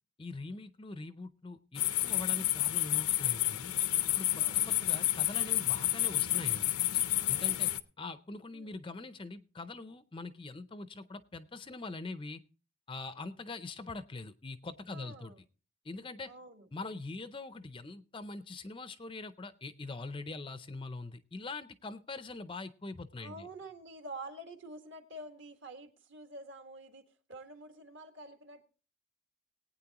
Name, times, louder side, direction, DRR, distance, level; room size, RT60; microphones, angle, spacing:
voice 1, 0.2-3.7 4.2-6.7 7.3-7.7 8.0-12.4 12.9-15.3 15.8-16.3 16.7-23.5, left 3 dB, 25° left, 12 dB, 0.5 m, -43 dB
sound 1, 1.7-7.8, left 15 dB, 85° left, 0.6 m, -30 dB
voice 2, 7.1-7.8 8.5-8.8 14.9-15.4 16.2-16.7 23.2-27.0 27.3-28.6, right 2 dB, 55° right, 5 dB, 1.6 m, -48 dB
20.0 x 9.2 x 2.9 m, 0.36 s
head